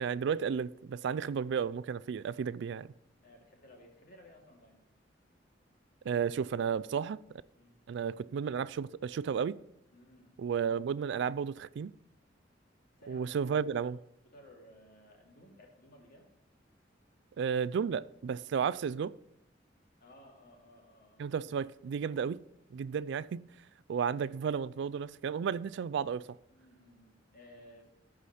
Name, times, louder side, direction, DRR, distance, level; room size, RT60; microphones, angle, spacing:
voice 1, 0.0-2.9 6.1-7.2 7.9-9.6 10.4-11.9 13.1-14.0 17.4-19.1 21.2-22.4 22.7-23.4 23.9-26.3, right 7 dB, 70° right, 0.3 m, -33 dB
voice 2, 3.2-4.8 7.5-7.8 9.9-10.3 12.9-13.5 14.2-16.3 20.0-21.3 26.5-27.9, left 1 dB, 50° left, 2.4 m, -57 dB
13.5 x 4.9 x 4.2 m
head